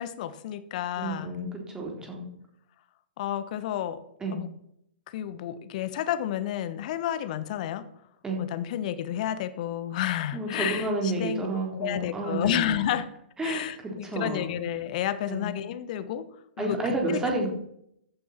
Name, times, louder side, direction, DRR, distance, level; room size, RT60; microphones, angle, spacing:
voice 1, 0.0-1.3 3.2-4.0 4.3-4.5 5.1-7.8 8.4-11.5 11.7-13.1 13.4-16.3 16.6-16.8 17.1-17.2, left 11 dB, 45° left, 13 dB, 1.1 m, -31 dB
voice 2, 1.0-2.3 4.2-4.4 8.2-8.4 10.3-12.8 13.4-14.5 15.3-15.5 16.6-17.5, right 2 dB, 10° right, 0 dB, 3.6 m, -30 dB
15.0 x 8.5 x 4.3 m, 0.73 s
figure-of-eight pair, 115°, 6 cm